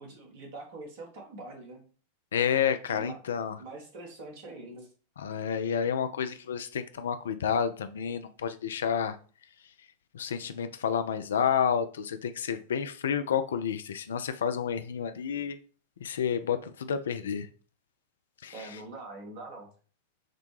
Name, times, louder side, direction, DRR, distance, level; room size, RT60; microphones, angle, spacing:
voice 1, 0.0-1.8 2.9-3.2 3.6-4.9 18.5-19.7, right 2 dB, 50° right, 1.2 m, -43 dB
voice 2, 2.3-3.6 5.2-9.2 10.1-15.6 16.0-17.5 18.4-18.8, left 7 dB, 65° left, 0.3 m, -30 dB
5.8 x 2.2 x 3.2 m
figure-of-eight pair, 90°, 0 cm